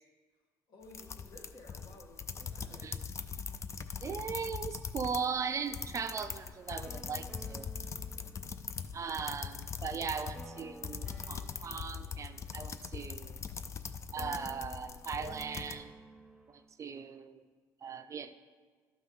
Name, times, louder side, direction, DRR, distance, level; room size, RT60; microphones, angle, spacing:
voice 1, 0.7-3.0 8.1-8.5, left 1 dB, 65° left, 0 dB, 1.7 m, -55 dB
sound 1, 0.8-5.3 5.6-15.8, left 6 dB, 35° left, 0.5 m, -41 dB
voice 2, 4.0-7.7 8.9-13.4 14.1-15.9 16.5-17.4 17.8-18.3, right 6 dB, 40° right, 9 dB, 0.5 m, -38 dB
sound 2, 5.9-9.0 10.3-13.8 14.2-16.7, right 1 dB, 5° right, 0.9 m, -54 dB
12.0 x 5.5 x 3.1 m, 1.5 s
cardioid pair, 95°, 8 cm